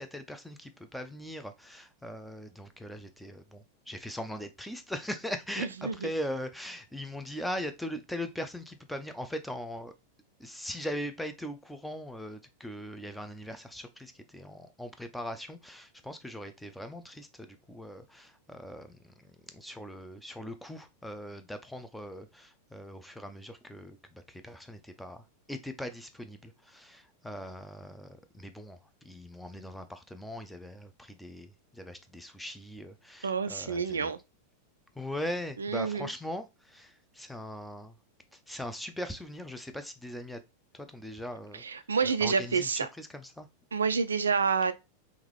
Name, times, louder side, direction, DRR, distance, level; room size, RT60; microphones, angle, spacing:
voice 1, 0.0-9.9 10.4-28.8 29.0-34.1 35.0-37.9 38.3-40.4 40.7-41.6 42.0-43.5, equal, 5° left, 0.5 m, -40 dB
voice 2, 5.6-6.1 33.2-34.2 35.6-36.1 41.5-42.9 43.7-44.7, right 5 dB, 70° right, 0.3 m, -28 dB
3.6 x 3.0 x 3.2 m
figure-of-eight pair, 90°, 0 cm